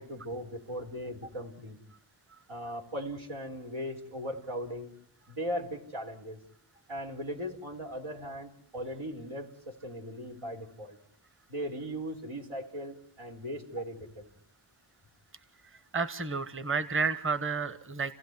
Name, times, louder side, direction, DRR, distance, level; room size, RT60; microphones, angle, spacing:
voice 1, 0.0-1.8 2.5-4.9 5.3-6.4 6.9-11.0 11.5-14.3, equal, 85° right, 2 dB, 4.3 m, -38 dB
voice 2, 15.9-18.1, right 5 dB, 25° right, 13 dB, 1.3 m, -31 dB
29.0 x 16.5 x 9.7 m, 0.67 s
wide cardioid pair, 85°, 48 cm